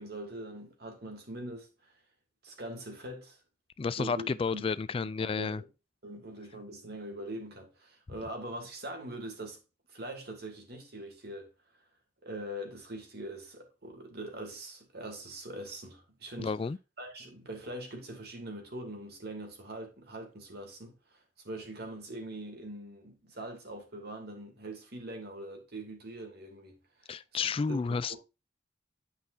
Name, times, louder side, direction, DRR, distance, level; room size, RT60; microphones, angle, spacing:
voice 1, 0.0-1.9 2.4-3.4 4.0-4.6 5.2-5.7 6.0-9.6 9.9-11.5 12.2-16.5 17.0-21.2 21.4-26.8 27.1-27.2 27.7-28.2, right 1 dB, 60° right, 2.7 m, -42 dB
voice 2, 3.8-5.6 16.4-16.8 27.1-28.2, left 5 dB, 30° left, 0.3 m, -31 dB
10.5 x 5.5 x 2.7 m
head